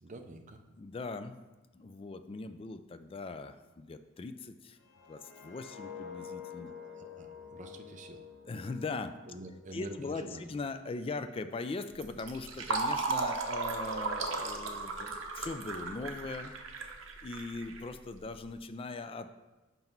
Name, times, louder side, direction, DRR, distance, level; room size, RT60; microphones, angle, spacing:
voice 1, 0.0-0.6 6.8-8.2 9.3-10.5, right 1 dB, 40° right, 6 dB, 0.6 m, -47 dB
voice 2, 0.8-1.4 1.7-4.8 5.1-6.7 8.5-9.1 9.7-16.5 17.2-19.3, left 3 dB, 25° left, 10 dB, 0.3 m, -40 dB
sound 1, 4.8-9.8 10.2-10.5, left 7 dB, 80° left, 0.9 m, -48 dB
Fill (with liquid), 11.9-18.3, right 3 dB, 75° right, 0.8 m, -36 dB
5.8 x 5.3 x 4.4 m, 1.1 s
head